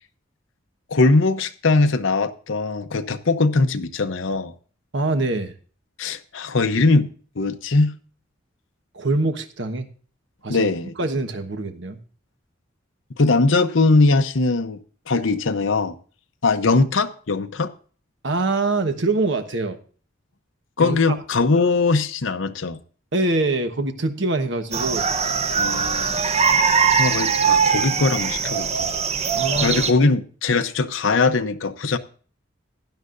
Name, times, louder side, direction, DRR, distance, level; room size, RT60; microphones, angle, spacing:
voice 1, 0.9-4.5 6.0-7.1 7.4-7.9 10.5-10.9 13.2-14.8 15.1-16.0 16.4-17.7 20.8-22.8 25.6-26.2 27.0-28.9 29.6-32.0, left 3 dB, 70° left, 0.8 m, -20 dB
voice 2, 4.9-5.5 8.9-9.9 10.4-10.7 11.0-12.0 18.2-19.8 20.8-21.0 23.1-25.1 27.1-27.2 29.3-29.8, right 2 dB, 65° right, 1.2 m, -24 dB
sound 1, 24.7-29.9, right 6 dB, 35° right, 0.9 m, -21 dB
16.0 x 11.0 x 2.6 m
head